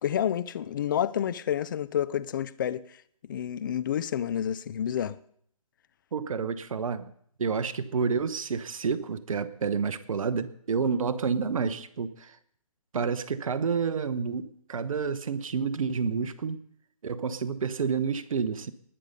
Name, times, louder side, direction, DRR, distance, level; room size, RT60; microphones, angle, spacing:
voice 1, 0.0-3.0 3.3-5.2, left 10 dB, 35° left, 0.5 m, -29 dB
voice 2, 6.1-7.1 7.4-12.4 12.9-16.6 17.0-18.7, right 5 dB, 60° right, 1.0 m, -29 dB
20.0 x 6.7 x 5.4 m
figure-of-eight pair, 150°, 19 cm